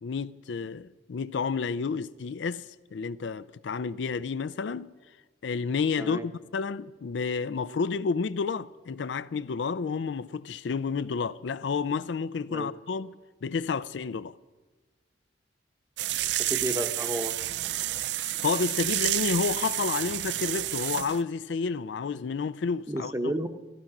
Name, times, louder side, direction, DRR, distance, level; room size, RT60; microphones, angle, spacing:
voice 1, 0.0-2.7 2.9-4.9 5.4-13.1 13.4-14.3 18.4-23.3, left 5 dB, 80° left, 0.4 m, -30 dB
sound 1, 16.0-21.2, right 14 dB, 70° right, 0.4 m, -30 dB
voice 2, 16.5-17.3 22.9-23.5, right 1 dB, 15° right, 0.9 m, -31 dB
14.5 x 13.5 x 6.0 m
head